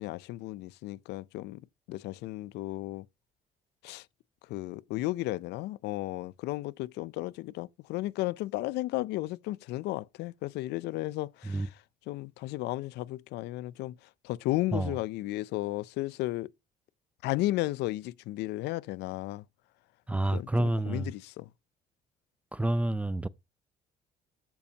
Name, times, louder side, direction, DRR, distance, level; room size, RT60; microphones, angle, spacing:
voice 1, 0.0-1.6 1.9-3.0 3.8-4.0 4.5-11.7 12.1-14.0 14.2-16.5 17.2-19.4 20.3-21.5, left 17 dB, 85° left, 0.5 m, -34 dB
voice 2, 20.1-21.1 22.5-23.3, right 1 dB, 10° right, 0.4 m, -29 dB
14.0 x 5.3 x 2.8 m
cardioid pair, 110°, 17 cm